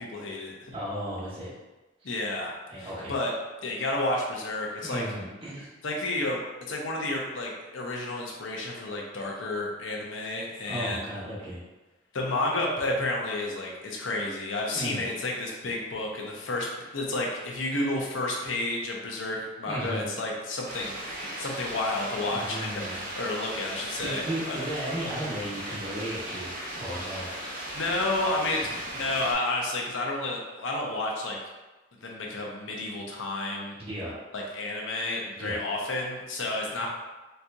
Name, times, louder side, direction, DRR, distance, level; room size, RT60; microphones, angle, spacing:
voice 1, 0.0-0.7 2.0-2.5 2.8-3.3 3.6-5.0 5.8-6.4 6.7-11.1 12.1-16.7 16.9-21.0 21.4-24.6 26.9-27.2 27.7-31.4 32.0-33.8 34.3-36.9, left 2 dB, 85° left, -1 dB, 0.7 m, -31 dB
voice 2, 0.7-1.5 2.7-3.1 4.8-5.7 10.7-11.6 14.7-15.1 19.7-20.1 22.3-23.1 24.0-26.5 26.8-27.3 33.8-34.2 35.4-35.6, right 1 dB, 30° right, -10 dB, 1.2 m, -35 dB
sound 1, 20.6-29.3, right 1 dB, 45° right, 0.8 m, -37 dB
4.2 x 2.3 x 2.6 m, 1.1 s
head